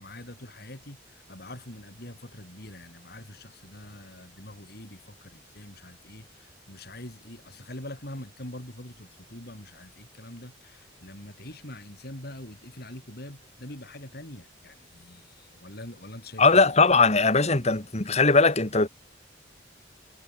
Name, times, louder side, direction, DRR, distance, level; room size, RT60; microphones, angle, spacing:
voice 1, 0.0-16.6, left 1 dB, 55° left, 5.5 m, -44 dB
voice 2, 16.4-18.9, left 3 dB, 35° left, 2.2 m, -20 dB
head